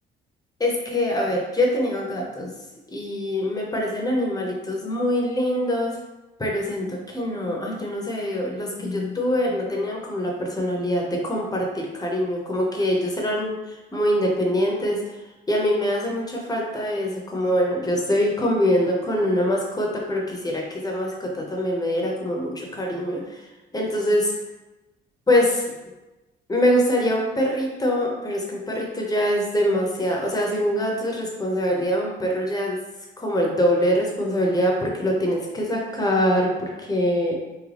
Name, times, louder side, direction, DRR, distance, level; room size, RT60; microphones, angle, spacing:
voice 1, 0.6-2.5 2.9-6.0 6.4-15.0 15.5-23.4 23.7-24.3 25.3-25.6 26.5-32.8 33.2-37.3, equal, 20° left, -1 dB, 0.9 m, -24 dB
3.8 x 2.2 x 3.4 m, 1.1 s
cardioid pair, 90°, 20 cm